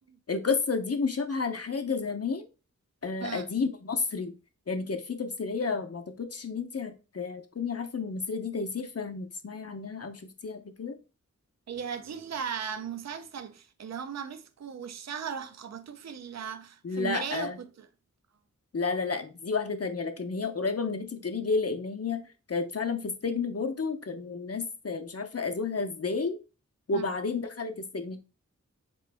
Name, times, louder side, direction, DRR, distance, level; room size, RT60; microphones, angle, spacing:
voice 1, 0.3-2.5 3.0-4.4 4.7-11.0 16.8-17.6 18.7-22.2 22.5-26.4 26.9-28.2, left 4 dB, 50° left, 0.6 m, -31 dB
voice 2, 11.7-17.9 26.9-27.0, right 7 dB, 60° right, 0.5 m, -37 dB
4.1 x 3.0 x 3.3 m
wide cardioid pair, 55°, 31 cm